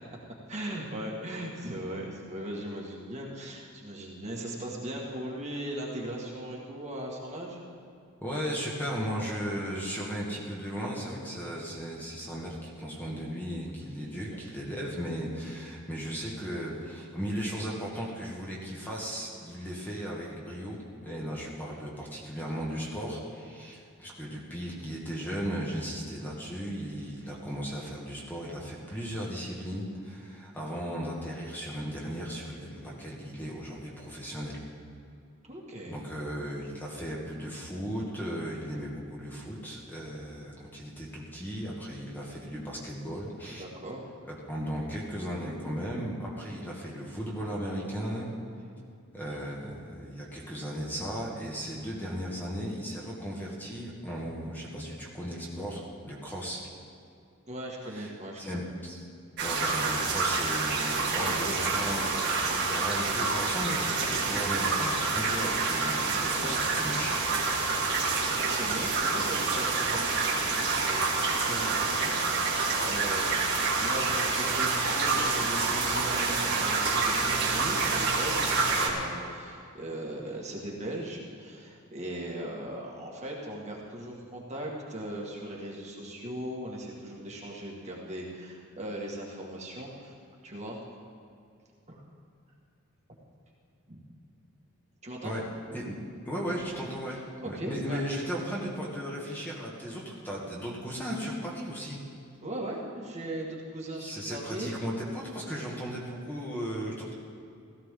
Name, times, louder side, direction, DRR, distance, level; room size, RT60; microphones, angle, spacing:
voice 1, 0.5-7.6 14.3-14.4 35.5-36.0 43.5-44.0 57.5-58.6 61.1-61.7 66.3-66.6 68.4-90.1 90.4-90.8 91.9-92.0 93.9-94.0 95.0-95.3 97.4-98.0 102.4-104.8, right 1 dB, 35° right, -3 dB, 1.9 m, -38 dB
voice 2, 8.2-34.6 35.9-43.7 44.5-48.3 49.1-56.7 57.9-58.1 58.4-59.0 59.4-62.1 62.5-67.9 95.2-95.4 95.7-96.0 96.2-97.2 97.5-102.0 104.0-107.1, equal, 10° left, -4 dB, 1.8 m, -36 dB
sound 1, 59.4-78.9, right 4 dB, 55° right, 2.1 m, -27 dB
17.0 x 14.5 x 3.8 m, 2.4 s
head